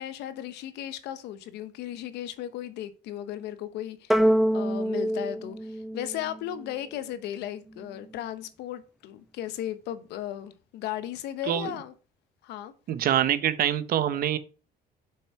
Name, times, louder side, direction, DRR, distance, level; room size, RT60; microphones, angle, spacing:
voice 1, 0.0-4.2 4.5-11.9 12.4-12.7, left 11 dB, 85° left, 0.9 m, -36 dB
sound 1, 4.1-6.7, right 1 dB, ahead, 0.4 m, -25 dB
voice 2, 12.9-14.4, right 10 dB, 60° right, 0.9 m, -25 dB
6.9 x 5.6 x 4.7 m
cardioid pair, 110°, 17 cm